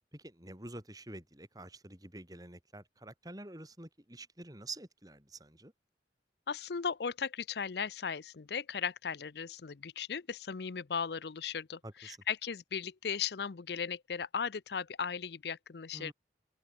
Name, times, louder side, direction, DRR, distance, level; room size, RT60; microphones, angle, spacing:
voice 1, 0.1-5.7 11.8-12.2 15.9-16.1, right 2 dB, 20° right, 3.7 m, -48 dB
voice 2, 6.5-16.1, left 6 dB, 65° left, 0.6 m, -37 dB
head